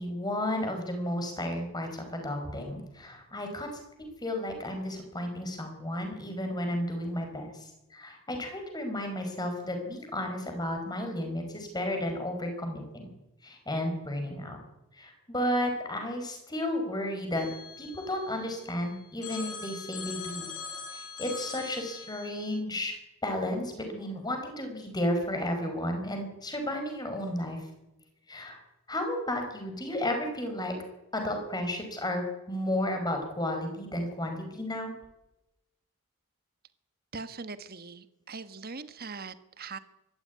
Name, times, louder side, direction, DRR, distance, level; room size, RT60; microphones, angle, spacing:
voice 1, 0.0-3.7 4.2-13.1 13.4-14.6 15.0-17.5 17.8-20.5 20.9-23.0 23.2-27.6 28.3-28.6 28.9-30.8 31.1-34.9, left 1 dB, 20° left, 4 dB, 5.4 m, -33 dB
Telephone, 17.3-18.7 19.2-22.6, left 5 dB, 80° left, 6.7 m, -42 dB
voice 2, 37.1-39.8, right 4 dB, 45° right, 12 dB, 1.4 m, -41 dB
24.5 x 14.0 x 9.6 m, 0.96 s
head